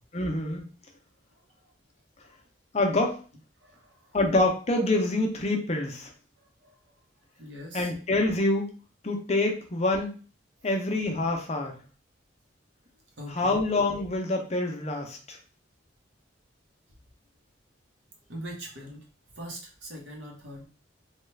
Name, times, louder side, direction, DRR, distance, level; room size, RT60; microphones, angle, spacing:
voice 1, 0.1-0.7 2.7-3.2 4.1-6.1 7.7-8.7 9.0-10.1 10.6-11.8 13.3-15.4, left 2 dB, 35° left, 3 dB, 0.6 m, -26 dB
voice 2, 3.6-4.1 6.6-6.7 7.4-7.9 13.2-13.6 18.3-19.0 19.3-20.7, equal, 70° right, 0 dB, 1.0 m, -41 dB
3.1 x 2.3 x 3.2 m, 0.37 s
head